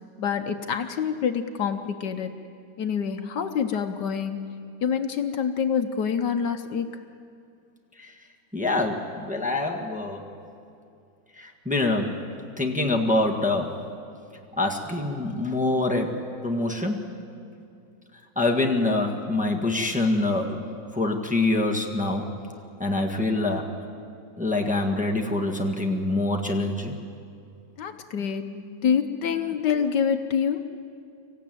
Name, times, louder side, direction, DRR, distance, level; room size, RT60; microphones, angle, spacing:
voice 1, 0.2-2.3 2.8-4.4 4.8-7.0 27.8-30.6, left 7 dB, 70° left, 8 dB, 1.4 m, -26 dB
voice 2, 8.5-10.3 11.3-12.2 12.6-13.7 14.6-16.2 16.4-17.1 18.3-22.2 22.8-23.7 24.4-26.9, left 2 dB, 5° right, 0 dB, 1.5 m, -25 dB
25.5 x 15.0 x 9.2 m, 2.5 s
omnidirectional pair, 2.0 m